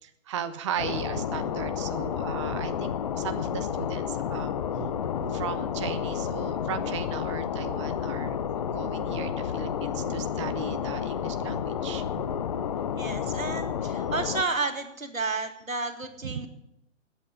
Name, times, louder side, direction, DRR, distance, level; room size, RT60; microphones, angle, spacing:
voice 1, 0.0-4.9 5.2-8.4 8.6-12.2 16.2-16.5, right 9 dB, 25° right, 11 dB, 0.5 m, -37 dB
sound 1, 0.8-14.4, left 8 dB, 30° left, 0.6 m, -31 dB
voice 2, 13.0-16.5, right 3 dB, 90° right, 7 dB, 2.2 m, -31 dB
13.0 x 8.5 x 9.7 m, 0.79 s
figure-of-eight pair, 135°, 39 cm